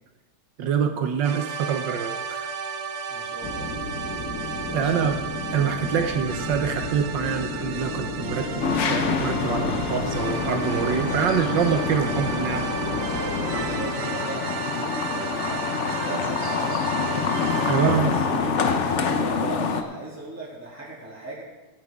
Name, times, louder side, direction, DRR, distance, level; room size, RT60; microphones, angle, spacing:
voice 1, 0.6-2.5 4.7-5.2 5.5-12.7 17.7-18.1, right 7 dB, 65° right, 6 dB, 1.3 m, -25 dB
sound 1, 1.2-19.1, right 6 dB, 85° right, 1.8 m, -34 dB
voice 2, 3.1-3.7 4.6-5.1 13.5-16.9 17.7-21.4, right 2 dB, 5° right, -7 dB, 2.9 m, -39 dB
sound 2, 3.4-13.9, left 2 dB, 40° left, 1.9 m, -32 dB
sound 3, 8.6-19.8, left 5 dB, 70° left, 0.6 m, -26 dB
16.5 x 9.6 x 3.6 m, 1.2 s
omnidirectional pair, 2.4 m